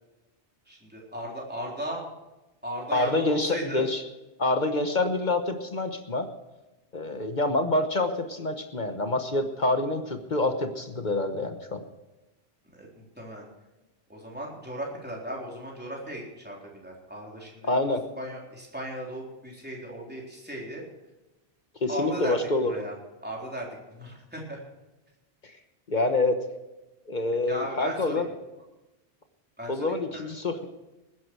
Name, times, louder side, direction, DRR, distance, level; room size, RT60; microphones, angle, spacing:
voice 1, 0.7-2.1 2.6-3.8 12.7-13.5 14.1-17.7 18.2-20.8 21.9-22.9 23.2-24.6 27.5-28.3 29.6-30.3, equal, 10° right, -3 dB, 3.8 m, -36 dB
voice 2, 2.9-4.0 4.4-6.3 6.9-11.8 17.6-18.1 21.8-22.7 25.9-26.4 27.1-28.3 29.7-30.6, left 2 dB, 45° left, 7 dB, 1.3 m, -26 dB
20.0 x 10.5 x 4.7 m, 1.0 s
omnidirectional pair, 1.1 m